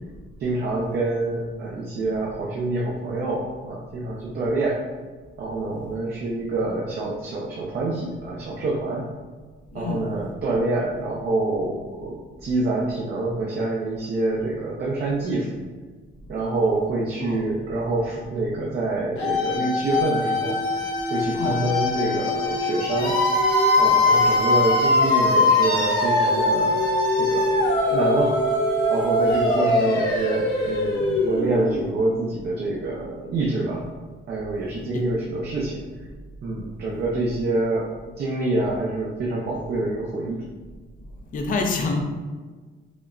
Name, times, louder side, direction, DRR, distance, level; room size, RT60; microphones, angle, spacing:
voice 1, 0.4-4.8 5.4-9.1 9.7-15.5 16.3-20.6 21.1-23.2 23.8-26.8 27.2-27.5 27.9-28.4 28.9-33.8 34.3-35.8 36.4-37.9 38.2-40.4, right 2 dB, 50° right, -4 dB, 0.6 m, -26 dB
voice 2, 9.7-10.1 17.2-17.5 21.3-21.7 34.9-35.0 41.3-42.0, left 3 dB, 40° left, 2 dB, 0.5 m, -27 dB
sound 1, 19.2-32.0, left 2 dB, 90° left, 0.8 m, -21 dB
4.9 x 2.1 x 2.4 m, 1.4 s
cardioid pair, 130°, 21 cm